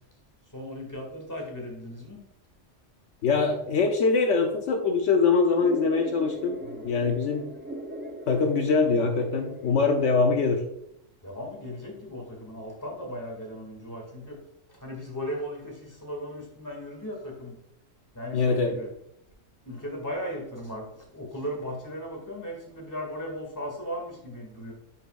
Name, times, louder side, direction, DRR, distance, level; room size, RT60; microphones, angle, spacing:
voice 1, 0.5-2.2 6.6-6.9 11.2-14.4 14.7-17.6 18.1-18.9 19.6-24.7, equal, 15° left, 0 dB, 2.1 m, -37 dB
voice 2, 3.2-6.6 6.8-7.5 8.3-10.6 18.3-18.7, left 4 dB, 75° left, 4 dB, 1.1 m, -23 dB
sound 1, 5.6-10.6, equal, 15° right, 0.4 m, -40 dB
11.0 x 5.7 x 2.4 m, 0.77 s
omnidirectional pair, 1.3 m